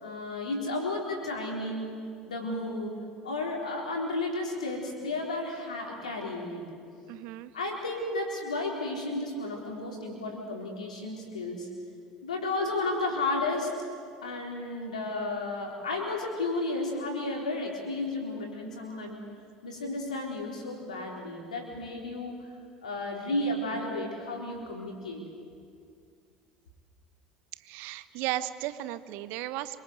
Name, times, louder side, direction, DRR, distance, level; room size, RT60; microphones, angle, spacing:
voice 1, 0.0-2.0 2.2-2.9 3.2-6.7 7.5-11.7 12.2-13.8 14.2-19.2 19.6-22.3 22.8-25.2, left 2 dB, 85° left, 0 dB, 4.1 m, -33 dB
voice 2, 7.1-7.5 27.6-29.8, right 14 dB, 60° right, 13 dB, 1.1 m, -35 dB
26.0 x 24.0 x 8.2 m, 2.3 s
hypercardioid pair, 65°, 4 cm